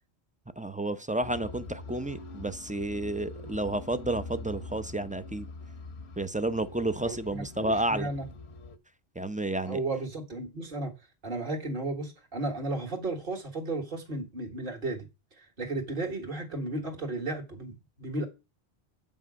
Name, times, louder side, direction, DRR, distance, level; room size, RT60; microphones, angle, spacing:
voice 1, 0.6-5.5 6.2-8.1 9.2-9.8, right 2 dB, 10° right, 0.4 m, -31 dB
sound 1, 1.2-8.8, left 3 dB, 75° left, 1.3 m, -44 dB
voice 2, 7.0-8.3 9.7-10.9 11.2-15.1 15.4-18.3, right 2 dB, 55° right, 2.0 m, -34 dB
8.6 x 5.6 x 6.1 m
omnidirectional pair, 1.1 m